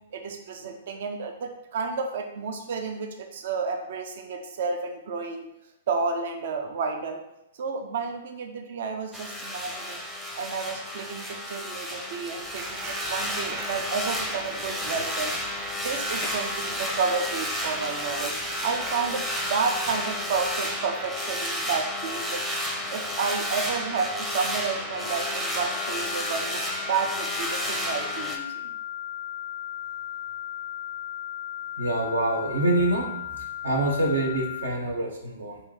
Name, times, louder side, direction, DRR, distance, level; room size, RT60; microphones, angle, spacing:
voice 1, 0.1-5.5 5.9-7.2 7.6-10.0 10.3-15.3 15.8-18.3 18.6-22.4 22.9-28.7, right 5 dB, 60° right, 4 dB, 0.5 m, -31 dB
sound 1, 9.1-28.4, equal, 5° right, 0.5 m, -31 dB
sound 2, 12.4-20.5, right 2 dB, 30° right, 0.9 m, -43 dB
sound 3, 24.7-34.7, left 12 dB, 70° left, 0.3 m, -36 dB
voice 2, 31.8-33.1 33.4-35.6, right 2 dB, 85° right, 0 dB, 0.9 m, -26 dB
3.0 x 2.7 x 3.8 m, 0.88 s
hypercardioid pair, 120°, 0 cm